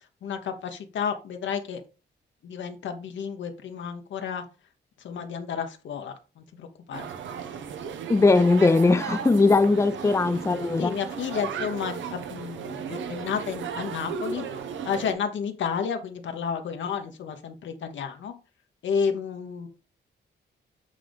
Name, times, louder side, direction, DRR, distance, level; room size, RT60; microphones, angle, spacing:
voice 1, 0.2-1.8 2.4-4.4 5.0-7.4 10.3-10.4 10.8-14.4 14.8-18.3 18.8-19.7, left 6 dB, 80° left, 1.1 m, -31 dB
sound 1, 6.9-15.1, right 7 dB, 90° right, 0.8 m, -35 dB
voice 2, 8.1-10.9, left 3 dB, 15° left, 0.5 m, -20 dB
8.2 x 3.8 x 3.5 m
cardioid pair, 105°, 19 cm